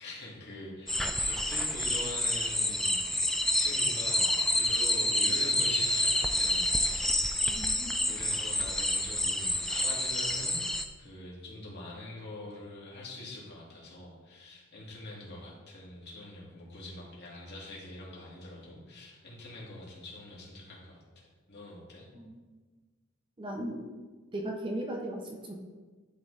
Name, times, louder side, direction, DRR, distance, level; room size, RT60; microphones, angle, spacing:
voice 1, 0.0-3.0 3.2-7.2 8.0-10.6 11.0-22.1, left 2 dB, 50° left, -5 dB, 2.0 m, -44 dB
sound 1, 0.9-10.9, left 1 dB, ahead, 0.3 m, -28 dB
voice 2, 7.5-7.9 22.1-22.4 23.4-23.8 24.3-25.6, right 1 dB, 25° right, 0 dB, 0.7 m, -37 dB
10.5 x 4.0 x 3.2 m, 1.4 s
head